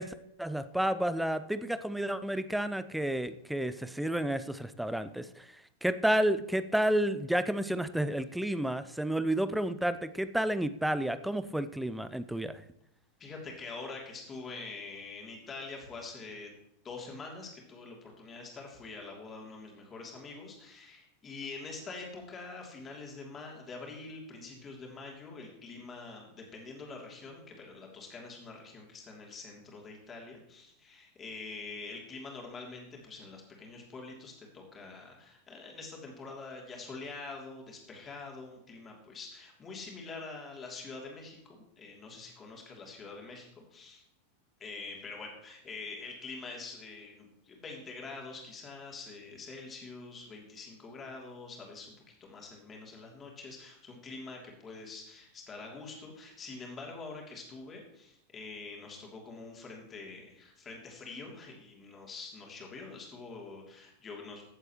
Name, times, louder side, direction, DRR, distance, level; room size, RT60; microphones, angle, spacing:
voice 1, 0.0-5.5 5.8-12.6, right 1 dB, 5° right, 13 dB, 0.6 m, -31 dB
voice 2, 13.2-16.5 16.8-44.0 44.6-51.9 52.2-64.4, left 3 dB, 20° left, 0 dB, 3.0 m, -45 dB
15.5 x 7.9 x 3.1 m, 0.82 s
figure-of-eight pair, 90°, 0 cm